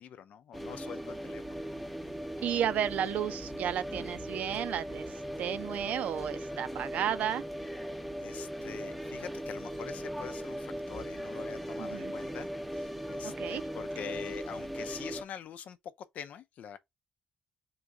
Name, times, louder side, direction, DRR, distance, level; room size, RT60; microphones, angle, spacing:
voice 1, 0.0-1.4 8.2-16.8, left 9 dB, 70° left, 0.6 m, -45 dB
sound 1, 0.5-15.2, equal, ahead, 0.6 m, -39 dB
voice 2, 2.4-7.4 11.8-12.1 13.2-13.6, right 9 dB, 75° right, 0.5 m, -33 dB
3.9 x 2.7 x 4.5 m
cardioid pair, 115°, 3 cm